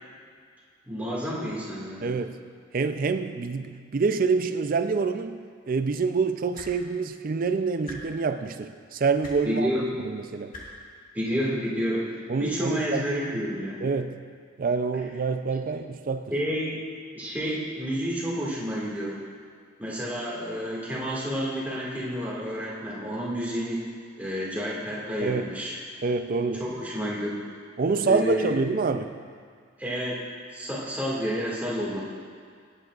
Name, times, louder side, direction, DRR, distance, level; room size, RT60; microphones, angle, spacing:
voice 1, 0.8-2.1 9.4-9.9 11.1-13.8 16.3-16.9 17.1-19.2 19.8-23.8 24.2-25.8 26.6-27.4 28.0-28.5 29.8-30.2 30.5-32.0, equal, 10° right, -6 dB, 1.9 m, -30 dB
voice 2, 2.0-2.4 2.7-5.4 5.7-9.7 10.0-10.5 12.3-13.1 13.8-14.2 14.6-16.3 25.2-25.5 26.0-26.6 27.8-29.1, right 4 dB, 45° right, 9 dB, 0.4 m, -26 dB
sound 1, 6.5-6.7 7.8-8.0 9.2-9.4 10.5-10.6 11.9-12.0, left 2 dB, 45° left, 1.9 m, -41 dB
18.5 x 8.6 x 2.4 m, 2.1 s
head